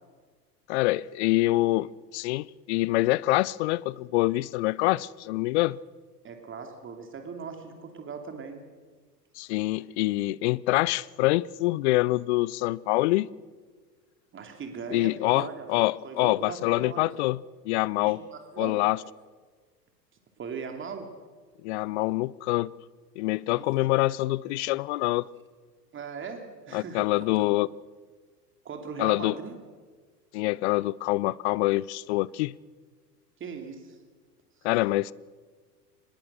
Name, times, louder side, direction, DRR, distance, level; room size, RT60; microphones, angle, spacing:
voice 1, 0.7-5.8 9.4-13.3 14.9-17.4 17.6-18.2 18.6-19.0 21.6-22.7 23.2-25.3 26.7-27.7 29.0-29.4 30.3-32.5 34.6-35.1, left 19 dB, 45° left, 0.6 m, -25 dB
voice 2, 6.2-8.6 14.3-15.7 16.0-17.1 18.1-18.8 20.4-21.1 23.6-23.9 25.9-27.5 28.6-29.6 33.4-34.0, right 5 dB, 25° right, 2.9 m, -39 dB
25.0 x 20.5 x 6.7 m
figure-of-eight pair, 90°, 50 cm